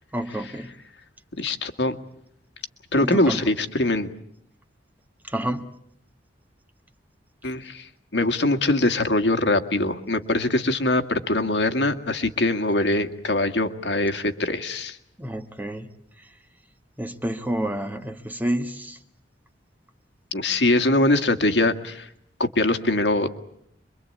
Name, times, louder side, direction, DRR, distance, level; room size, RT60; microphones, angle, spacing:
voice 1, 0.1-0.7 3.0-3.4 5.2-5.7 15.2-15.9 16.2-16.3 17.0-19.0, right 1 dB, 10° right, 1.6 m, -29 dB
voice 2, 1.4-2.0 2.9-4.1 7.4-15.0 20.3-22.1 22.4-23.3, left 2 dB, 75° left, 1.9 m, -23 dB
26.5 x 23.5 x 8.6 m
head